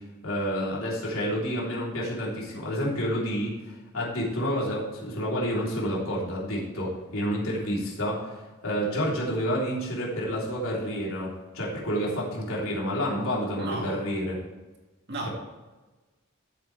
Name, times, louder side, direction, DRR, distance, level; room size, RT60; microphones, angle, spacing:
voice 1, 0.2-14.4, equal, 80° left, -5 dB, 3.5 m, -29 dB
voice 2, 13.6-14.0 15.1-15.3, right 2 dB, 55° right, 0 dB, 2.2 m, -33 dB
14.0 x 7.7 x 3.4 m, 1.2 s
head